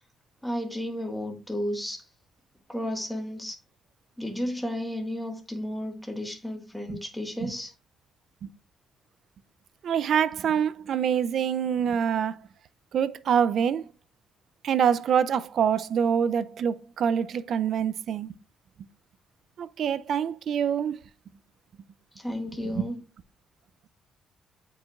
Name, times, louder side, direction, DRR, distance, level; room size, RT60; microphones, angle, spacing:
voice 1, 0.4-2.0 2.7-3.6 4.2-7.7 22.1-23.0, equal, 5° left, 1.6 m, -33 dB
voice 2, 9.8-12.4 12.9-13.9 14.6-18.3 19.6-21.0 22.7-22.8, right 8 dB, 65° right, 0.4 m, -25 dB
8.4 x 4.9 x 2.4 m
cardioid pair, 90°, 0 cm